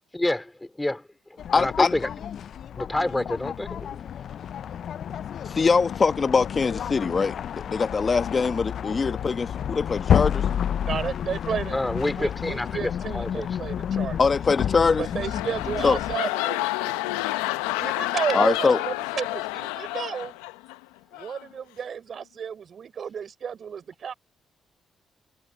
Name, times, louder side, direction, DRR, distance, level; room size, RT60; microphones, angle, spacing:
voice 1, 0.1-0.5 0.8-1.0 1.5-2.1 2.7-3.9 11.7-12.8 13.1-13.5, left 1 dB, 15° left, 4.4 m, -27 dB
sound 1, 1.4-16.2, left 9 dB, 65° left, 0.5 m, -30 dB
voice 2, 1.5-1.9 5.5-10.4 14.2-15.1 15.8-16.0 18.3-18.8, left 4 dB, 45° left, 1.5 m, -23 dB
voice 3, 10.8-11.8 12.1-14.2 15.0-17.3 17.7-20.4 21.1-24.1, right 7 dB, 60° right, 3.9 m, -32 dB
sound 2, 14.8-20.8 21.1-21.5, left 19 dB, 90° left, 0.8 m, -30 dB
hypercardioid pair, 45°, 0 cm